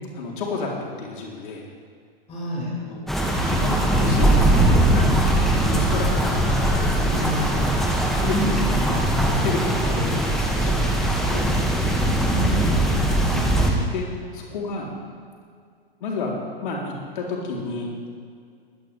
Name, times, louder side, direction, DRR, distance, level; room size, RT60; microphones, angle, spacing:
voice 1, 0.1-1.6 2.8-3.1 3.5-4.4 4.9-7.7 8.1-9.1 9.3-11.5 13.2-14.1 14.3-14.9 16.0-17.9, left 3 dB, 55° left, -2 dB, 3.6 m, -31 dB
voice 2, 2.3-2.7 6.2-6.6 7.1-7.4 8.3-8.5 12.2-12.7, equal, 20° left, -7 dB, 5.6 m, -29 dB
sound 1, 3.1-13.7, right 1 dB, ahead, 2.0 m, -20 dB
23.0 x 17.5 x 3.5 m, 2.2 s
figure-of-eight pair, 105°, 31 cm